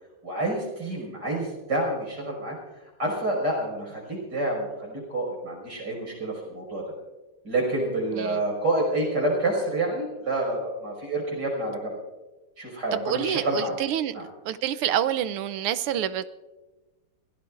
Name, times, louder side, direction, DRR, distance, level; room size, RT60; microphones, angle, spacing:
voice 1, 0.2-2.6 3.0-6.8 7.4-11.9 12.6-13.7 14.1-14.2, right 1 dB, 50° right, -1 dB, 6.4 m, -28 dB
voice 2, 12.9-14.1 14.5-16.3, right 10 dB, 90° right, 13 dB, 1.7 m, -27 dB
26.5 x 16.5 x 2.5 m, 1.1 s
omnidirectional pair, 2.4 m